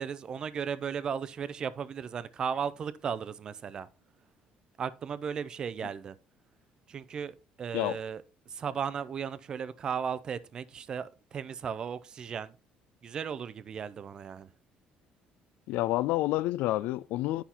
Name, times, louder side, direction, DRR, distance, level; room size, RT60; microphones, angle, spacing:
voice 1, 0.0-3.9 4.8-6.2 6.9-12.5 13.0-14.5, right 7 dB, 30° right, 0.4 m, -36 dB
voice 2, 15.7-17.4, left 17 dB, 80° left, 0.3 m, -29 dB
10.0 x 5.6 x 2.9 m
cardioid pair, 175°, 3 cm